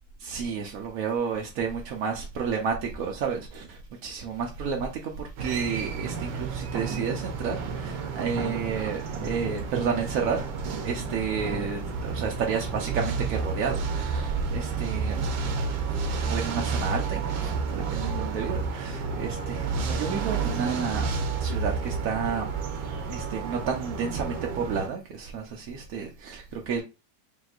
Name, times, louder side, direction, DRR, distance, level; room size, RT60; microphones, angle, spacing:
voice 1, 0.2-10.4 10.8-15.2 16.3-21.1 21.4-22.5 23.1-26.8, right 6 dB, 65° right, 0.8 m, -31 dB
sound 1, 5.4-24.9, right 4 dB, 85° right, 1.5 m, -31 dB
5.2 x 3.0 x 2.4 m
omnidirectional pair, 2.1 m